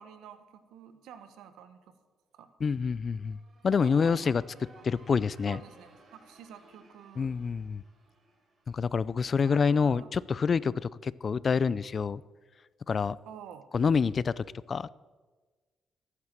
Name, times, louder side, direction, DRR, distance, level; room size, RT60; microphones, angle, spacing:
voice 1, 0.0-1.9 2.3-2.5 3.8-4.4 5.5-7.3 9.4-10.1 13.3-13.7, right 8 dB, 85° right, 10 dB, 1.3 m, -49 dB
voice 2, 2.6-3.4 3.6-4.4 4.8-5.6 7.2-7.8 8.7-12.2 12.9-13.2 13.7-14.9, left 5 dB, 45° left, 20 dB, 0.4 m, -27 dB
sound 1, 2.9-9.7, right 2 dB, 45° right, 3.7 m, -60 dB
14.5 x 9.6 x 7.5 m, 1.4 s
cardioid pair, 90°, 0 cm